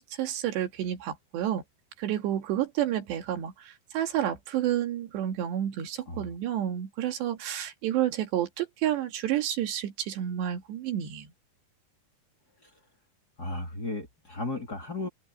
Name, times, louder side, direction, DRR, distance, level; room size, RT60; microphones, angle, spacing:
voice 1, 0.0-1.6 2.0-11.3, right 11 dB, 75° right, 4.1 m, -30 dB
voice 2, 13.4-15.1, left 2 dB, 25° left, 3.4 m, -34 dB
omnidirectional pair, 5.0 m